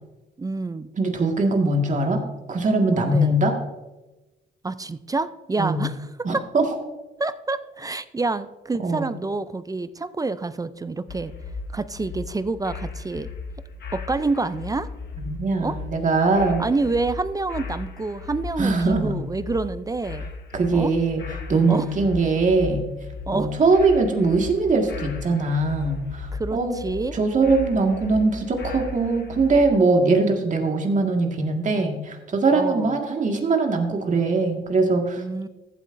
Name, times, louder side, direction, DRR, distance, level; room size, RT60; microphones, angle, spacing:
voice 1, 0.4-0.9 2.9-3.4 4.6-6.5 7.2-11.3 11.7-13.3 13.9-14.9 15.6-15.8 16.6-20.3 20.7-20.9 21.7-21.9 23.3-23.5 26.3-27.1 32.5-33.0 35.2-35.5, right 3 dB, 20° right, 14 dB, 0.4 m, -28 dB
voice 2, 1.0-2.2 2.5-3.6 5.6-5.8 6.2-6.6 8.8-9.1 15.3-16.6 18.6-19.2 20.5-21.2 21.5-22.9 23.3-26.8 27.1-35.2, right 3 dB, 40° right, 3 dB, 1.8 m, -21 dB
sound 1, 11.1-29.7, left 4 dB, 55° left, 1.4 m, -37 dB
14.5 x 8.3 x 2.6 m, 1.1 s
cardioid pair, 90°, 20 cm